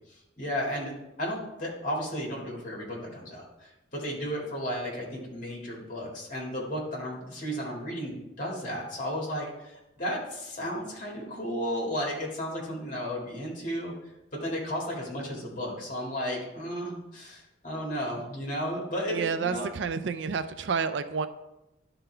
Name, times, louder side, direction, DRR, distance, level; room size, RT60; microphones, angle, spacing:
voice 1, 0.1-0.9 1.2-13.9 14.3-19.7, equal, 45° left, -3 dB, 2.1 m, -34 dB
voice 2, 19.1-21.3, right 5 dB, 70° right, 11 dB, 0.4 m, -29 dB
11.5 x 3.9 x 3.3 m, 0.94 s
head